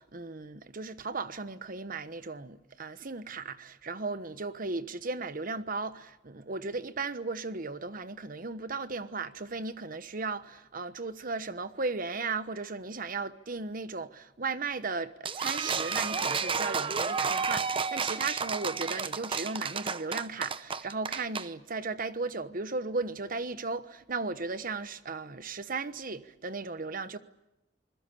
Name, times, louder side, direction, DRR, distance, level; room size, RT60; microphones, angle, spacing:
voice 1, 0.0-27.2, right 4 dB, 50° right, 1.2 m, -36 dB
sound 1, 15.2-21.5, right 5 dB, 30° right, 0.9 m, -31 dB
27.0 x 21.0 x 8.5 m
head